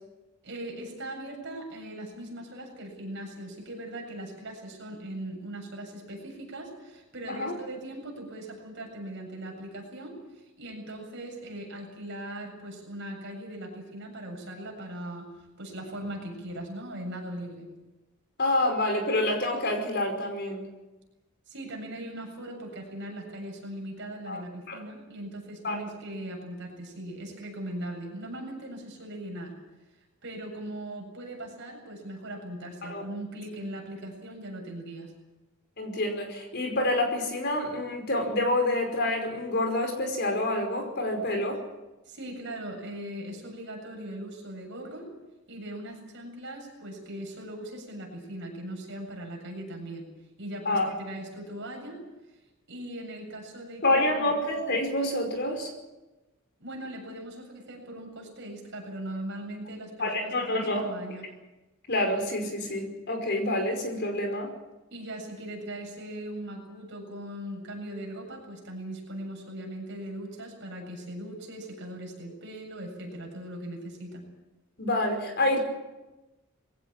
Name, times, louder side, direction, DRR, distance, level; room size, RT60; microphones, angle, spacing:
voice 1, 0.4-15.3 15.6-17.7 21.5-29.5 30.2-35.1 42.0-45.1 45.5-50.0 50.4-52.0 52.7-54.3 56.6-61.3 64.9-74.3, right 1 dB, 55° right, 1 dB, 7.5 m, -39 dB
voice 2, 18.4-20.7 24.3-24.4 24.7-24.8 25.6-25.8 32.8-33.0 35.8-41.6 50.7-50.9 53.8-55.7 60.0-60.9 61.9-64.5 74.8-75.6, left 1 dB, 50° left, 5 dB, 5.3 m, -27 dB
22.0 x 17.0 x 8.9 m, 1.1 s
head